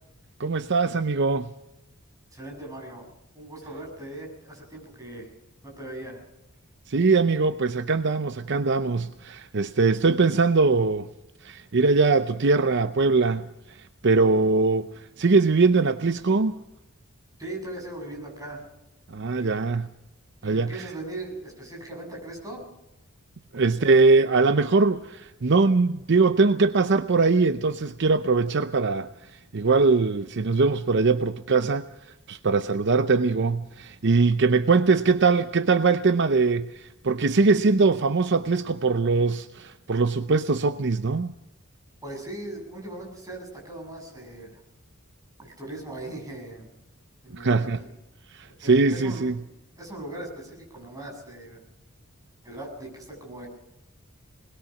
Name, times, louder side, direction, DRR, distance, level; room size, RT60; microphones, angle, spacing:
voice 1, 0.4-1.5 6.9-11.1 11.4-16.6 19.1-19.9 20.4-20.8 23.5-31.9 32.3-41.3 47.4-47.8 48.3-49.4, right 4 dB, 55° right, 0.7 m, -22 dB
voice 2, 2.3-3.1 3.3-5.3 5.6-6.2 17.4-18.6 19.4-19.6 20.4-22.6 42.0-44.6 45.4-46.7 47.2-47.9 48.6-49.2 49.8-51.6 52.4-53.5, right 1 dB, 15° right, 7.5 m, -39 dB
21.5 x 20.5 x 6.0 m
head